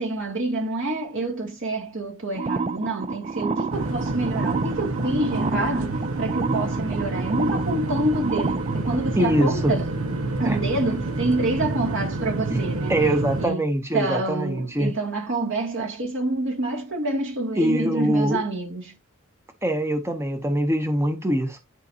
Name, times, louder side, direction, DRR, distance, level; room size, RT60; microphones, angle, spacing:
voice 1, 0.0-9.9 10.4-12.9 13.4-13.7 13.9-19.0, right 2 dB, 60° right, 2.5 m, -27 dB
sound 1, 2.3-9.0, right 4 dB, 30° right, 0.5 m, -29 dB
sound 2, 3.7-13.5, right 2 dB, 80° right, 1.2 m, -28 dB
voice 2, 9.2-9.7 10.4-10.6 12.5-12.6 12.9-14.9 17.6-18.4 19.6-21.6, right 1 dB, 10° right, 0.9 m, -23 dB
11.0 x 5.2 x 2.8 m
head